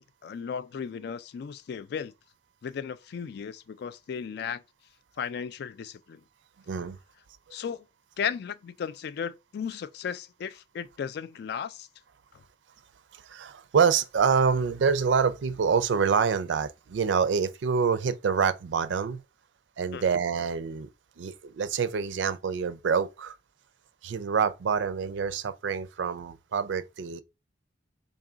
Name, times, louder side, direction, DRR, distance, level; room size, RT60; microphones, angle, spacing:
voice 1, 0.0-2.1 2.6-4.6 5.2-6.2 7.5-7.8 8.2-11.9 19.9-20.1, left 7 dB, 60° left, 0.3 m, -35 dB
voice 2, 6.7-7.0 13.1-19.2 19.8-20.9 21.2-23.4 24.0-27.2, right 6 dB, 75° right, 0.4 m, -26 dB
3.7 x 2.3 x 3.8 m
head